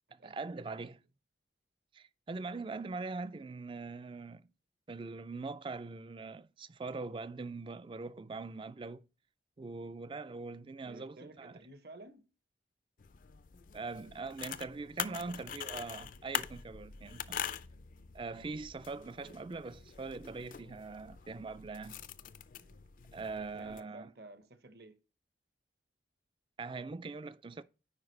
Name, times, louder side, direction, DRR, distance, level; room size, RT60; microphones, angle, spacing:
voice 1, 0.1-1.0 1.9-4.5 4.9-9.0 9.6-11.6 13.7-17.4 18.1-22.0 23.1-24.1 26.6-27.6, right 3 dB, 30° right, 0.3 m, -42 dB
voice 2, 10.8-12.3 14.8-15.4 18.9-19.4 22.5-22.8 23.5-25.0, right 2 dB, 60° right, 1.0 m, -54 dB
sound 1, 13.0-23.8, left 8 dB, 50° left, 0.4 m, -44 dB
9.6 x 4.7 x 3.2 m
head